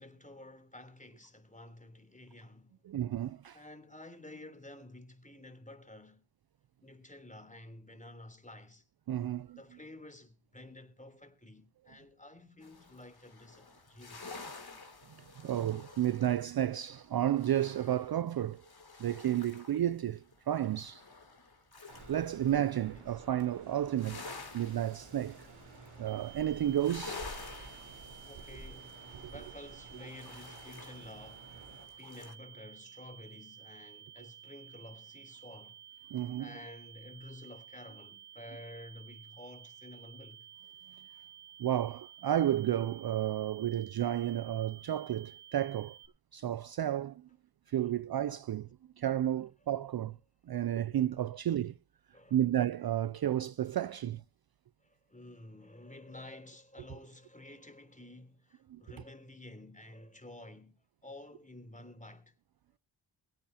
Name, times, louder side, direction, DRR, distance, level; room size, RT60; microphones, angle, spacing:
voice 1, 0.0-2.8 3.5-6.2 6.8-8.8 9.5-14.4 22.9-23.1 27.9-35.8 36.4-40.5 43.2-43.6 52.1-52.4 54.8-62.3, left 1 dB, 15° left, 3.5 m, -51 dB
voice 2, 2.9-3.6 9.1-9.6 15.4-18.6 19.0-21.0 22.1-24.2 24.5-25.5 26.0-27.3 36.1-36.5 41.6-46.0 46.3-47.3 47.7-48.7 49.0-50.2 50.5-51.7 52.3-54.2 58.7-58.8, right 11 dB, 50° right, 0.5 m, -32 dB
sound 1, 12.6-19.9 20.2-22.9 23.3-32.3, left 4 dB, 50° left, 3.2 m, -50 dB
sound 2, 21.9-31.9, right 2 dB, 90° right, 4.7 m, -52 dB
sound 3, 26.1-46.1, right 10 dB, 20° right, 2.8 m, -53 dB
23.5 x 8.6 x 2.9 m
cardioid pair, 40°, 48 cm